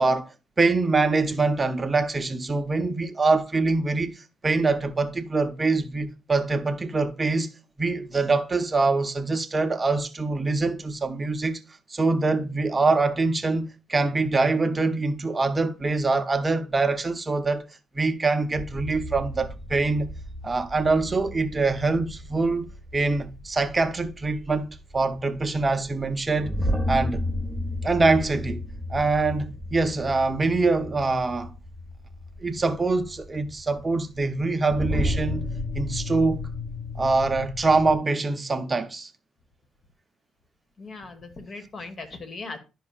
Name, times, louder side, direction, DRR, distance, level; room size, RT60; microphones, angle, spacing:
voice 1, 0.0-7.5 7.8-11.6 11.9-17.7 17.9-20.1 20.4-22.7 22.9-26.5 26.9-27.2 27.8-28.6 28.9-31.5 32.4-35.5 35.8-36.4 37.0-39.1, right 3 dB, 25° right, 0.6 m, -24 dB
sound 1, 18.5-37.9, left 1 dB, 5° left, 0.8 m, -33 dB
voice 2, 40.8-42.6, left 3 dB, 45° left, 1.3 m, -39 dB
10.5 x 5.2 x 2.3 m
cardioid pair, 90°, 0 cm